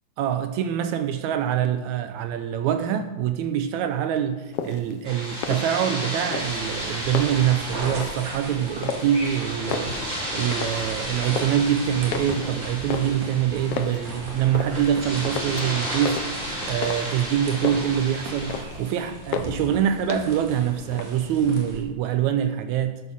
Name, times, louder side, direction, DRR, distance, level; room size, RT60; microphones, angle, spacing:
voice 1, 0.2-10.0 10.3-16.3 16.7-23.0, right 10 dB, 85° right, 1.6 m, -25 dB
sound 1, 4.5-4.9 5.3-6.0 6.3-7.6 8.0-8.3 8.8-9.3 9.6-10.9 11.1-11.7 12.1-14.0 14.5-15.0 15.2-17.2 17.5-18.0 18.3-18.9 19.3-19.7 20.1-20.5 20.8-21.5, left 7 dB, 85° left, 1.3 m, -32 dB
sound 2, 5.0-18.6, equal, 15° right, 3.2 m, -33 dB
sound 3, 6.3-21.8, right 1 dB, 65° right, 3.6 m, -38 dB
11.0 x 7.9 x 6.3 m
omnidirectional pair, 3.9 m